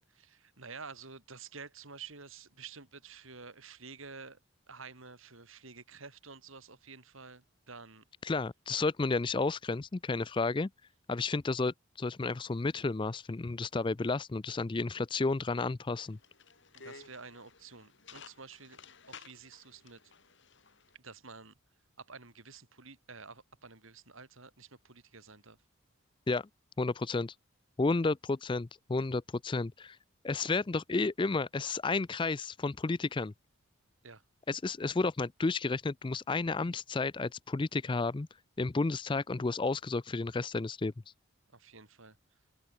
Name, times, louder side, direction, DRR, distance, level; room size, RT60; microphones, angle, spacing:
voice 1, 0.2-4.4 4.7-8.0 16.7-18.8 19.1-20.1 21.0-21.5 22.0-25.6 34.0-34.2 41.5-42.2, right 4 dB, 70° right, 3.6 m, -50 dB
voice 2, 8.2-10.7 11.1-16.2 26.3-26.5 26.8-27.3 27.8-30.0 30.2-33.3 34.5-38.3 38.6-40.9, left 3 dB, 20° left, 0.4 m, -32 dB
sound 1, 16.0-20.9, left 5 dB, 55° left, 6.1 m, -54 dB
open air
head